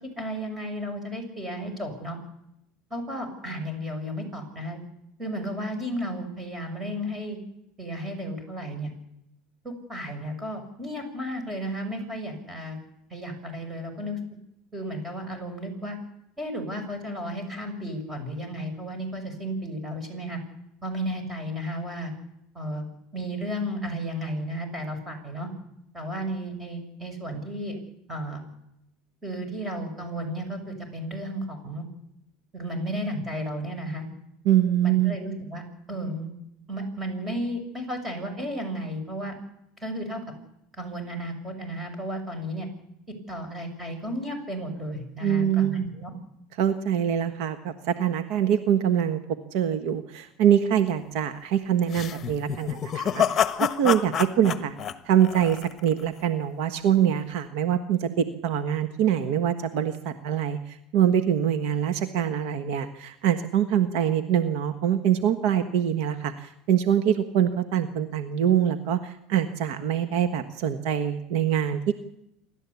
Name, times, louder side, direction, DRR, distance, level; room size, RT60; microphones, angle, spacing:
voice 1, 0.2-2.2 2.9-4.8 5.2-7.4 7.8-8.9 9.6-12.8 13.1-14.4 14.7-16.0 16.4-20.4 20.8-22.1 22.5-25.5 25.9-27.8 28.1-28.4 29.2-31.8 32.5-34.0 34.8-35.6 35.9-36.3 36.7-39.3 39.8-40.2 40.7-42.7 43.3-46.1, equal, 15° right, 6 dB, 6.4 m, -33 dB
voice 2, 34.4-35.2 45.2-45.9 46.6-49.2 49.5-54.7 55.1-71.9, right 9 dB, 70° right, 9 dB, 1.3 m, -24 dB
sound 1, 51.9-56.0, left 9 dB, 30° left, 1.3 m, -27 dB
27.5 x 13.0 x 8.4 m, 0.82 s
supercardioid pair, 125°, 0 cm